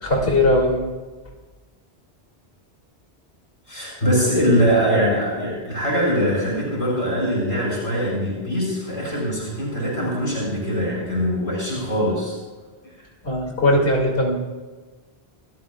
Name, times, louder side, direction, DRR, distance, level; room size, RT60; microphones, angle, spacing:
voice 1, 0.0-0.9 13.2-14.4, left 1 dB, 55° left, -2 dB, 2.9 m, -19 dB
voice 2, 3.7-12.4 12.8-12.9, equal, 90° left, -4 dB, 6.0 m, -22 dB
29.0 x 13.5 x 2.4 m, 1.3 s
omnidirectional pair, 1.1 m